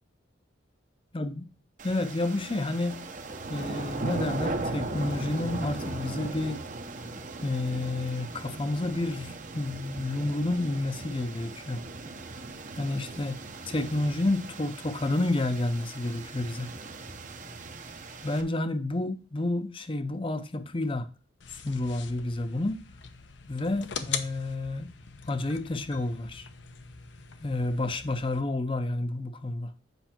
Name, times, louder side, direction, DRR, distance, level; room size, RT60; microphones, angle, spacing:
voice 1, 1.1-1.4 1.8-3.1 3.5-6.6 7.4-11.8 12.7-13.4 13.6-16.7 18.2-21.1 21.5-22.8 23.5-24.9 25.3-26.5 27.4-29.7, left 2 dB, 30° left, 0.6 m, -30 dB
sound 1, 1.8-18.4, right 2 dB, 40° right, 0.8 m, -38 dB
sound 2, 21.4-28.4, left 7 dB, 75° left, 0.8 m, -41 dB
8.1 x 5.5 x 4.4 m
head